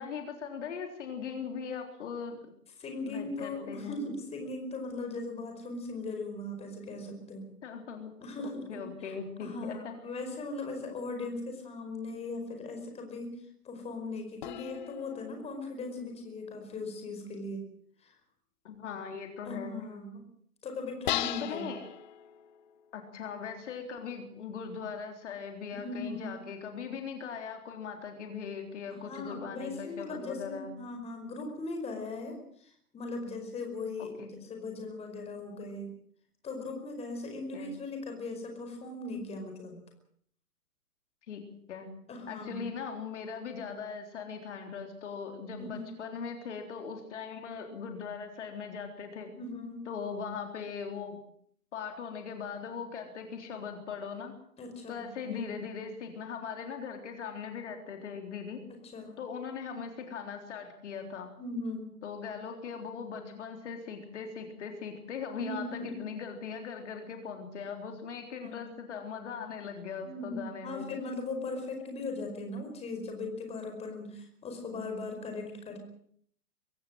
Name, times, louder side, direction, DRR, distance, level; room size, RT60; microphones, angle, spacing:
voice 1, 0.0-2.4 3.1-4.0 7.6-8.1 8.4-9.9 18.6-19.7 21.4-21.8 22.9-30.7 34.0-34.3 37.5-37.7 41.3-41.9 42.3-49.3 49.9-51.2 51.7-54.3 54.9-58.6 59.2-61.3 62.0-70.9, left 6 dB, 50° left, 4 dB, 3.9 m, -40 dB
voice 2, 2.8-7.5 8.2-9.1 9.4-13.3 13.6-17.7 18.0-18.1 19.4-20.2 20.6-21.7 25.7-26.4 28.9-34.1 34.5-35.9 36.4-39.8 42.1-42.7 45.6-46.0 49.3-49.8 54.6-55.5 58.7-59.2 61.4-62.0 65.3-65.9 68.4-68.7 70.0-75.9, left 2 dB, 15° left, 4 dB, 5.1 m, -39 dB
sound 1, 14.4-16.5 21.1-22.9, left 12 dB, 30° left, 0.8 m, -38 dB
23.5 x 16.0 x 7.8 m, 0.62 s
figure-of-eight pair, 130°, 45 cm